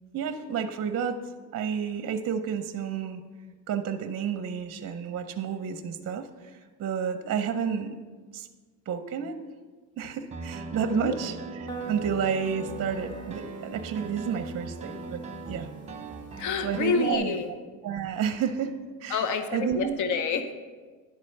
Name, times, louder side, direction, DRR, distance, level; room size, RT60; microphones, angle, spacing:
voice 1, 0.1-1.2 1.5-3.2 3.7-8.0 8.3-8.5 8.9-9.4 10.0-11.4 11.9-15.7 16.6-17.4 17.8-19.2 19.5-19.9, right 7 dB, 40° right, 8 dB, 0.6 m, -30 dB
Piano, 10.3-17.2, right 4 dB, 15° right, 0.9 m, -40 dB
sound 1, 11.7-17.4, right 3 dB, 10° left, 1.5 m, -43 dB
voice 2, 16.4-17.5 19.1-20.5, left 5 dB, 50° left, 8 dB, 0.8 m, -28 dB
10.5 x 4.3 x 6.5 m, 1.4 s
cardioid pair, 105°, 39 cm